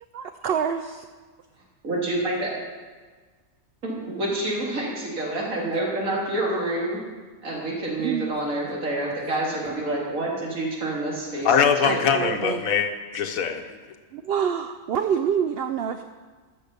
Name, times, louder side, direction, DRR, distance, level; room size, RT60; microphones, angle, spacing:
voice 1, 0.1-1.1 8.0-8.3 11.8-12.7 14.1-16.0, right 7 dB, 65° right, 8 dB, 0.6 m, -27 dB
voice 2, 1.8-2.5 3.8-7.0 7.4-12.0, right 1 dB, 80° right, -3 dB, 2.6 m, -28 dB
voice 3, 11.3-13.8, left 7 dB, 85° left, 5 dB, 1.3 m, -22 dB
13.0 x 5.4 x 6.8 m, 1.4 s
omnidirectional pair, 1.4 m